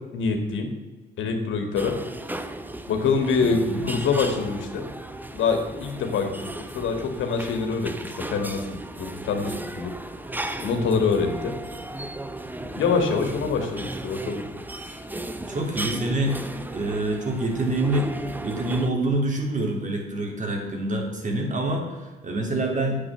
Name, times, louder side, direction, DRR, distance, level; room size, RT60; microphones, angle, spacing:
voice 1, 0.1-0.7 1.2-1.9 2.9-4.8 5.3-9.9 10.6-11.5 12.7-14.4, left 5 dB, 80° left, 5 dB, 2.3 m, -25 dB
sound 1, 1.8-18.9, right 1 dB, 10° right, 1.0 m, -35 dB
voice 2, 3.4-3.9 13.4-13.5 15.5-16.4 16.7-18.1 18.4-23.0, right 2 dB, 40° right, 1 dB, 3.4 m, -26 dB
9.1 x 8.5 x 7.7 m, 1.3 s
cardioid pair, 90°, 20 cm